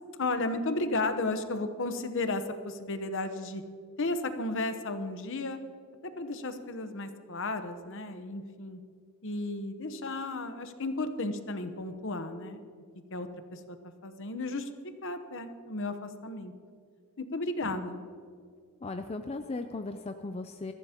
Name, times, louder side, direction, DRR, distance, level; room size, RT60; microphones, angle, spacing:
voice 1, 0.2-3.6 4.0-5.6 6.0-8.8 9.2-12.6 13.1-13.8 14.0-14.7 15.0-16.5 17.3-18.0, left 2 dB, 60° left, 9 dB, 1.0 m, -34 dB
voice 2, 18.8-20.7, left 3 dB, 25° left, 7 dB, 0.4 m, -37 dB
22.0 x 14.0 x 2.9 m, 2.2 s
head